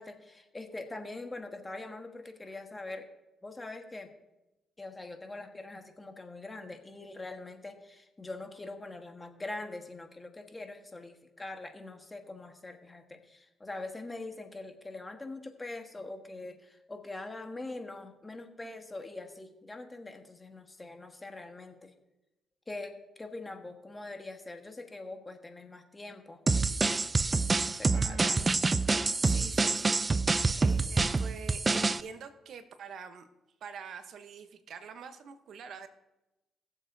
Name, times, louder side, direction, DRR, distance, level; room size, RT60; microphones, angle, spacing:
voice 1, 0.0-3.1 3.4-4.1 4.8-21.9 22.7-26.4 27.7-28.5, left 2 dB, 20° left, 5 dB, 1.4 m, -43 dB
sound 1, 26.5-32.0, right 3 dB, 25° right, 0.4 m, -27 dB
voice 2, 27.9-28.7 29.2-30.0 30.3-33.3 33.6-35.9, right 6 dB, 65° right, 9 dB, 0.9 m, -46 dB
21.5 x 7.3 x 2.7 m, 0.98 s
cardioid pair, 90°, 0 cm